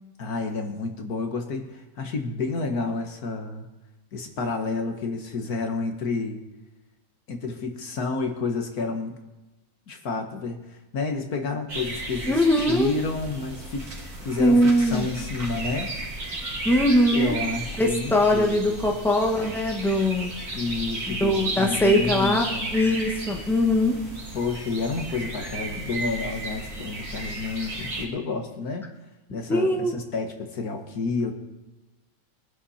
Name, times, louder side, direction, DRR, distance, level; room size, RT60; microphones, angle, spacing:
voice 1, 0.2-3.7 4.1-6.4 7.3-9.2 9.9-10.6 10.9-13.9 14.2-15.9 17.1-18.9 20.5-22.9 24.3-28.9 29.3-31.3, left 3 dB, 80° left, 5 dB, 2.0 m, -30 dB
sound 1, 11.7-28.0, right 2 dB, 80° right, 3.4 m, -34 dB
voice 2, 12.3-12.9 14.4-15.1 16.6-17.4 17.8-20.3 21.1-24.0 29.5-29.9, left 1 dB, ahead, 1 dB, 1.4 m, -21 dB
22.5 x 10.5 x 4.3 m, 1.1 s
omnidirectional pair, 1.6 m